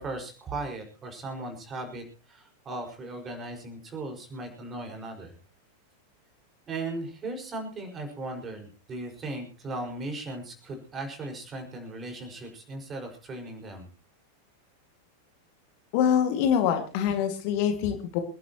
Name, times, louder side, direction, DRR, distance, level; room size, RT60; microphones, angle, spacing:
voice 1, 0.0-5.4 6.7-13.9, right 2 dB, 25° right, 4 dB, 5.5 m, -37 dB
voice 2, 15.9-18.2, left 8 dB, 45° left, 6 dB, 2.3 m, -25 dB
27.5 x 11.5 x 3.1 m, 0.34 s
figure-of-eight pair, 90°, 0 cm